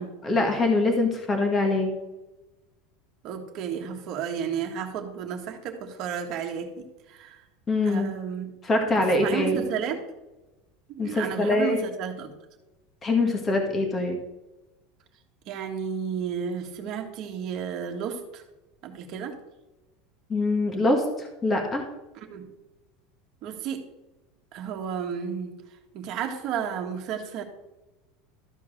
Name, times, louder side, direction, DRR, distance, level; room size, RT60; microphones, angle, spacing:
voice 1, 0.2-2.0 7.7-8.1 8.6-9.6 11.0-11.8 13.0-14.2 20.3-21.8, left 2 dB, 15° left, 3 dB, 1.7 m, -24 dB
voice 2, 3.2-7.4 7.8-8.5 8.9-10.0 10.9-12.3 15.5-18.4 18.8-19.4 22.1-22.5 23.4-23.9 24.5-25.5 25.9-27.4, right 7 dB, 40° right, 3 dB, 1.7 m, -32 dB
13.0 x 4.5 x 7.4 m, 1.1 s
supercardioid pair, 165°, 0 cm